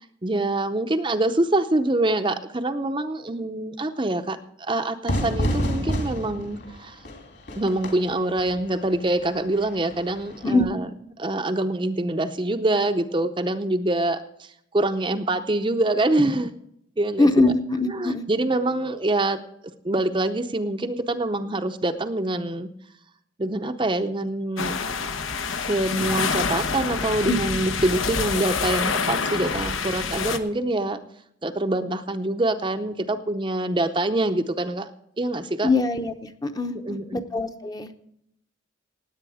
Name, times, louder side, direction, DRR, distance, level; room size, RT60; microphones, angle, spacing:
voice 1, 0.2-7.0 7.6-10.9 11.2-14.5 14.7-16.5 17.0-17.3 17.9-19.4 19.8-22.7 23.4-24.8 25.7-31.0 31.4-34.9 35.2-35.7 36.8-37.2, right 2 dB, 25° right, 7 dB, 0.6 m, -25 dB
Fire / Fireworks, 5.1-10.6, equal, 55° left, 2.7 m, -30 dB
voice 2, 17.2-18.3 27.2-27.4 35.6-38.0, left 2 dB, 20° left, 7 dB, 0.7 m, -23 dB
sound 1, 24.6-30.4, left 5 dB, 85° left, 1.0 m, -27 dB
17.5 x 8.6 x 4.9 m, 0.73 s
head